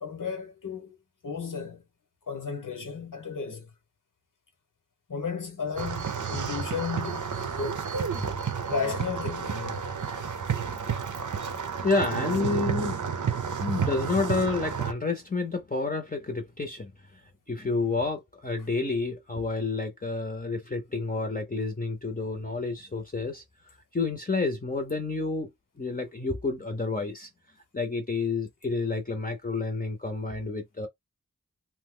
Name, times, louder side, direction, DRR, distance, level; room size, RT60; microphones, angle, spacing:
voice 1, 0.0-1.0 1.2-1.8 2.3-3.7 5.1-7.8 8.7-9.8 18.6-18.7, left 5 dB, 90° left, 1.0 m, -34 dB
sound 1, 5.8-14.9, right 6 dB, 70° right, 0.6 m, -31 dB
voice 2, 8.2-8.7 10.4-13.0 13.5-17.2 17.5-23.4 23.9-25.5 25.8-27.3 27.7-30.9, left 3 dB, 25° left, 0.6 m, -30 dB
2.8 x 2.1 x 3.7 m
wide cardioid pair, 65°, 31 cm